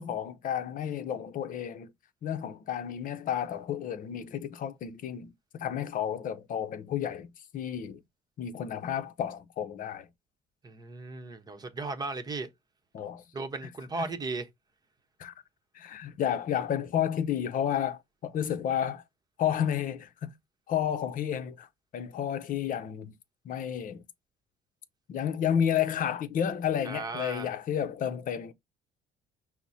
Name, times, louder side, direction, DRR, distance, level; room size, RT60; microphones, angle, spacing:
voice 1, 0.0-1.9 2.2-7.3 7.5-8.0 8.4-10.1 12.9-13.2 15.2-15.3 15.7-19.0 19.4-20.3 20.7-21.7 21.9-23.2 23.4-24.0 25.1-28.5, left 9 dB, 55° left, 0.7 m, -31 dB
voice 2, 10.6-12.5 13.3-14.5 26.8-27.5, right 3 dB, 25° right, 0.9 m, -36 dB
5.9 x 2.1 x 4.1 m
cardioid pair, 110°, 17 cm